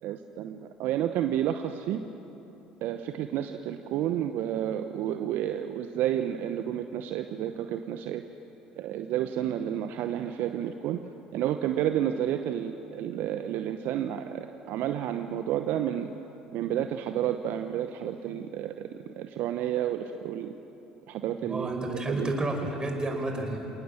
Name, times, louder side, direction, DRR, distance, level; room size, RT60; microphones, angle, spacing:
voice 1, 0.0-2.0 2.8-8.2 8.8-11.0 11.3-16.1 16.5-20.5 21.1-21.7 22.2-22.3, right 10 dB, 60° right, 7 dB, 0.9 m, -30 dB
voice 2, 21.4-23.7, right 2 dB, 20° right, 2 dB, 5.5 m, -30 dB
28.0 x 19.0 x 7.2 m, 3.0 s
hypercardioid pair, 60°, 4 cm